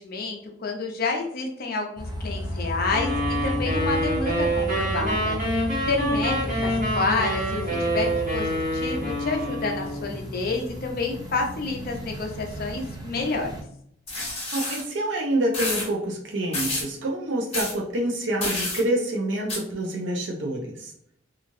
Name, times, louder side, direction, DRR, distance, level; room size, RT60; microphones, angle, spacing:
voice 1, 0.0-13.5, left 3 dB, 50° left, 2 dB, 0.6 m, -29 dB
sound 1, 2.0-13.6, equal, 20° right, 0.6 m, -33 dB
sound 2, 2.9-10.1, equal, 40° right, 1.1 m, -27 dB
sound 3, 14.1-14.8 15.5-15.9 16.5-16.9 17.5-17.7 18.4-18.8 19.5-19.6, left 2 dB, 35° left, 1.0 m, -29 dB
voice 2, 14.5-20.9, right 1 dB, 65° right, 0 dB, 0.5 m, -27 dB
2.9 x 2.4 x 2.6 m, 0.68 s
head